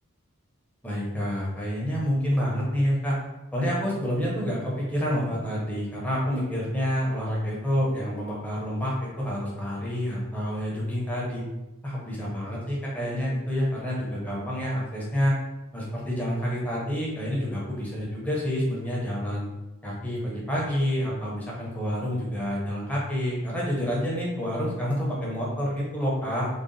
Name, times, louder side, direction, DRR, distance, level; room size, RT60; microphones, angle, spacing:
voice 1, 0.8-3.2 3.5-11.4 11.8-15.3 15.7-19.5 19.8-26.5, equal, 5° left, -5 dB, 1.1 m, -28 dB
4.1 x 2.4 x 3.9 m, 1.0 s
head